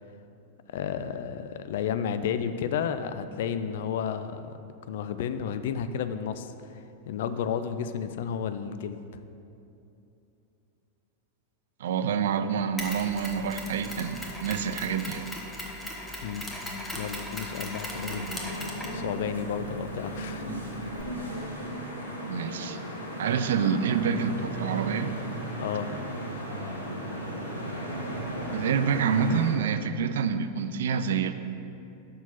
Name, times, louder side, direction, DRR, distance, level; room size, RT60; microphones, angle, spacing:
voice 1, 0.7-4.6 4.9-9.0 16.2-16.5 17.0-18.3 18.9-20.6 21.2-21.4 25.6-25.9, left 8 dB, 55° left, 11 dB, 0.3 m, -32 dB
voice 2, 11.8-15.3 22.3-22.8 23.2-25.1 28.5-31.3, right 7 dB, 60° right, 10 dB, 0.3 m, -27 dB
Mechanisms, 12.8-21.0, left 1 dB, 10° left, 1.1 m, -39 dB
sound 1, 17.9-29.5, right 1 dB, 90° left, 1.2 m, -35 dB
6.0 x 5.5 x 5.7 m, 2.8 s
figure-of-eight pair, 90°, 0 cm